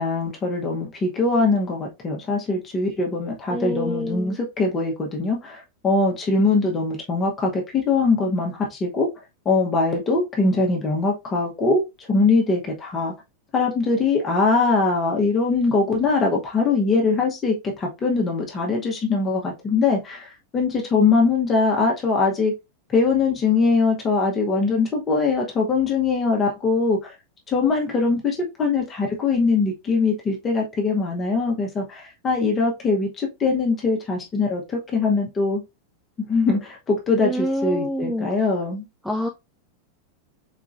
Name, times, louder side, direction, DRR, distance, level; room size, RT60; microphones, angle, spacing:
voice 1, 0.0-9.1 9.4-13.1 13.5-22.5 22.9-27.1 27.5-35.6 36.3-38.8, left 3 dB, 20° left, 1.1 m, -22 dB
voice 2, 3.5-4.4 37.2-38.3 39.0-39.3, equal, ahead, 0.5 m, -27 dB
4.2 x 3.6 x 2.5 m
figure-of-eight pair, 90°, 0 cm